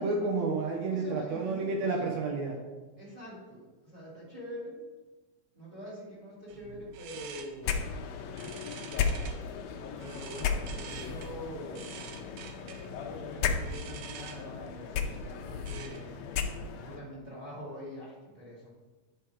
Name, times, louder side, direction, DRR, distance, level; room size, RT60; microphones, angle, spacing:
voice 1, 0.0-2.6, right 3 dB, 70° right, 2 dB, 2.2 m, -30 dB
voice 2, 0.9-2.1 3.0-4.8 5.5-7.7 8.4-8.6 8.9-9.2 10.0-12.0 12.9-16.2 16.7-18.7, equal, 15° right, -6 dB, 2.3 m, -45 dB
sound 1, 6.5-16.2, right 7 dB, 90° right, 2.2 m, -48 dB
sound 2, 7.6-17.0, left 6 dB, 75° left, 1.7 m, -35 dB
9.7 x 4.8 x 4.7 m, 1.2 s
omnidirectional pair, 3.5 m